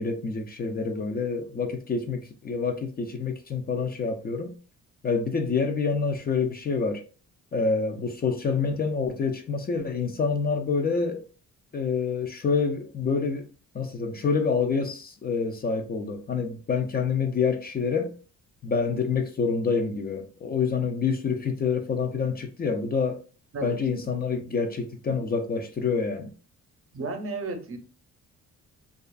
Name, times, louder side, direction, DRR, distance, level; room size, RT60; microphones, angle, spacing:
voice 1, 0.0-4.5 5.0-7.0 7.5-11.2 11.7-13.5 13.7-18.1 18.6-23.2 23.6-26.3, left 5 dB, 30° left, 0.4 m, -27 dB
voice 2, 26.9-27.8, right 3 dB, 45° right, 0.7 m, -32 dB
2.4 x 2.4 x 2.3 m
cardioid pair, 90°, 30 cm